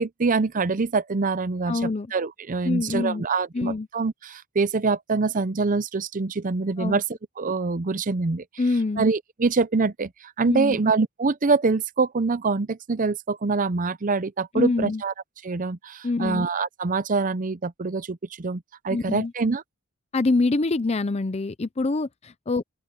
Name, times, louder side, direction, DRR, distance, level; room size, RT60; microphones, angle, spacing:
voice 1, 0.0-7.0 7.4-8.4 9.0-10.1 10.4-15.1 15.4-19.6, right 4 dB, 35° right, 0.6 m, -25 dB
voice 2, 1.7-2.1 2.6-3.2 3.5-3.9 6.8-7.0 8.6-9.0 10.4-10.8 14.5-15.0 16.0-16.5 18.9-19.3 20.1-22.6, left 3 dB, 30° left, 0.5 m, -25 dB
open air
head